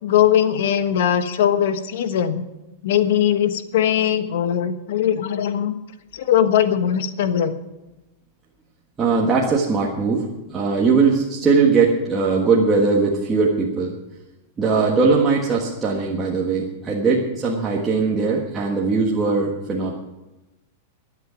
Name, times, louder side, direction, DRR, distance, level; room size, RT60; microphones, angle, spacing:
voice 1, 0.0-2.4 2.8-5.8 6.1-7.5, left 9 dB, 65° left, 9 dB, 1.3 m, -20 dB
voice 2, 9.0-13.9 14.6-19.9, right 4 dB, 15° right, -4 dB, 1.5 m, -20 dB
23.0 x 8.4 x 5.1 m, 1.0 s
supercardioid pair, 170°, 0 cm